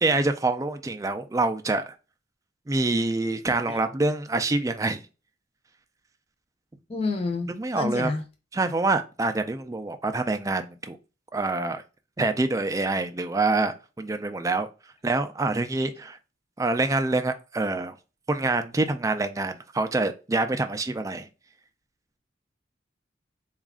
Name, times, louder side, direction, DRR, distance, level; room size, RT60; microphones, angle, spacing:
voice 1, 0.0-1.9 2.7-5.0 7.5-8.1 8.5-11.0 11.3-11.8 12.2-14.7 15.0-16.2 16.6-17.9 18.3-21.3, right 2 dB, 15° right, 0.3 m, -26 dB
voice 2, 6.9-8.2, left 3 dB, 30° left, 0.6 m, -29 dB
4.0 x 2.4 x 3.5 m
head